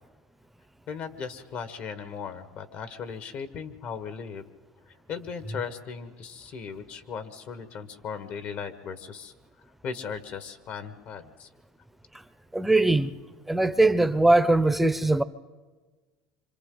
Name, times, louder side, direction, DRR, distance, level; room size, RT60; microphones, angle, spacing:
voice 1, 0.9-4.4 4.8-9.3 9.8-11.5, left 6 dB, 55° left, 1.5 m, -37 dB
voice 2, 12.5-13.1 13.5-15.2, right 2 dB, 5° right, 0.7 m, -21 dB
26.0 x 25.5 x 3.9 m
supercardioid pair, 100°, 3 cm